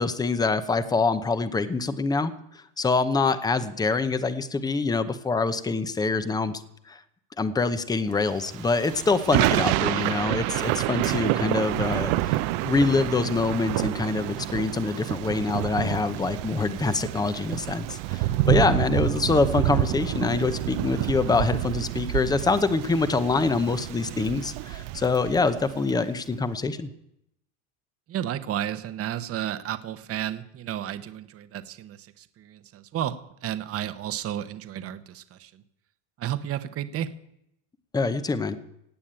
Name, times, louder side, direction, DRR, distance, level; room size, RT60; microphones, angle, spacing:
voice 1, 0.0-2.3 2.8-6.6 6.9-7.0 7.4-26.9 37.9-38.6, left 3 dB, 10° left, 12 dB, 0.8 m, -25 dB
Thunder / Rain, 8.4-25.9, right 16 dB, 60° right, 0.8 m, -28 dB
voice 2, 28.1-35.6 36.2-37.1, right 11 dB, 35° right, 12 dB, 1.0 m, -32 dB
17.0 x 8.4 x 8.9 m, 0.80 s
cardioid pair, 150°, 42 cm